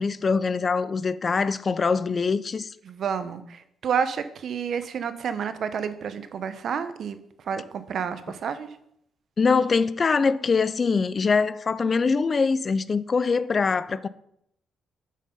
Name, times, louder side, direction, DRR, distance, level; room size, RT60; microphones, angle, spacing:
voice 1, 0.0-2.7 9.4-14.1, left 4 dB, 40° left, 0.4 m, -23 dB
voice 2, 2.8-8.7, right 7 dB, 60° right, 0.7 m, -30 dB
6.4 x 5.5 x 5.3 m
cardioid pair, 90°, 0 cm